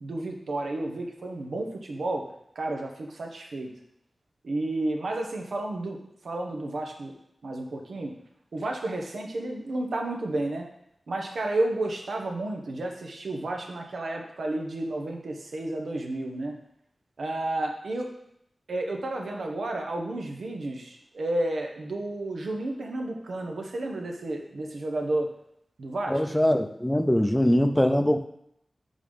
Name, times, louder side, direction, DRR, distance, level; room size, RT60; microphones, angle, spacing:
voice 1, 0.0-2.3 2.5-3.7 4.4-7.1 7.4-8.1 8.5-10.6 11.1-16.5 17.2-18.1 18.7-25.3 25.8-26.2, right 2 dB, 85° right, 2 dB, 0.8 m, -31 dB
voice 2, 26.1-28.3, equal, 10° left, 7 dB, 0.5 m, -22 dB
5.0 x 3.7 x 5.2 m, 0.73 s
cardioid pair, 45°, 0 cm